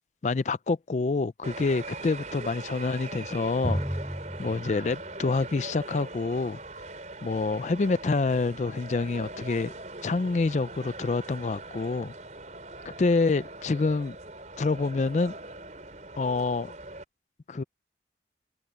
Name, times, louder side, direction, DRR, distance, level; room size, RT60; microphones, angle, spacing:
voice 1, 0.2-3.8 4.4-6.6 7.2-9.7 10.0-12.1 13.0-14.2 14.6-15.3 16.2-16.7 17.5-17.6, left 3 dB, 40° left, 0.4 m, -27 dB
sound 1, 1.4-17.0, right 2 dB, 45° right, 4.5 m, -42 dB
Drum, 3.6-7.2, equal, 15° right, 3.7 m, -35 dB
open air
head